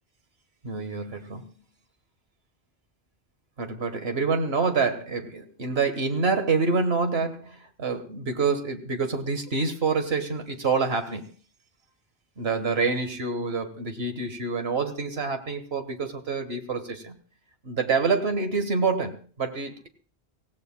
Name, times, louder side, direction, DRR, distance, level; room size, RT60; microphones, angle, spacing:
voice 1, 0.6-1.5 3.6-11.3 12.4-17.2 17.6-19.9, right 4 dB, 85° right, 7 dB, 1.7 m, -27 dB
24.0 x 16.5 x 2.2 m, 0.38 s
omnidirectional pair, 1.0 m